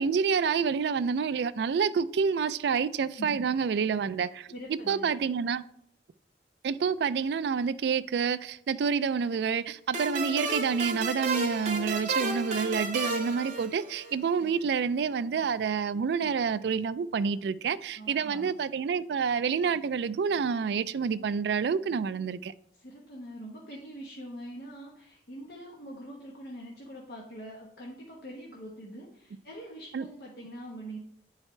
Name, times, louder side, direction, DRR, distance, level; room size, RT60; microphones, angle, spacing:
voice 1, 0.0-4.5 4.9-5.6 6.6-22.5 29.9-30.0, right 6 dB, 70° right, 0.3 m, -28 dB
voice 2, 4.5-5.1 18.0-18.5 22.8-31.0, right 1 dB, 60° left, 1.1 m, -43 dB
sound 1, 9.9-14.3, right 3 dB, 40° right, 1.5 m, -32 dB
9.6 x 4.8 x 3.2 m
head